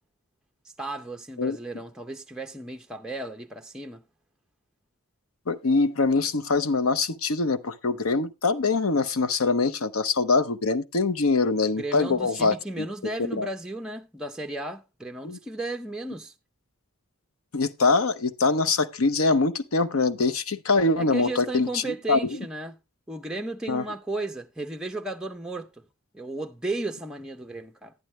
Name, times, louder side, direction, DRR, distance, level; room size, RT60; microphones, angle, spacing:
voice 1, 0.8-4.0 11.8-16.3 21.0-22.8 23.1-25.8 26.1-27.9, right 2 dB, 5° right, 0.5 m, -34 dB
voice 2, 5.5-12.9 13.3-13.5 15.2-15.4 17.5-21.8 22.1-22.4 23.7-23.8, left 3 dB, 80° left, 0.8 m, -23 dB
11.0 x 10.5 x 3.1 m
head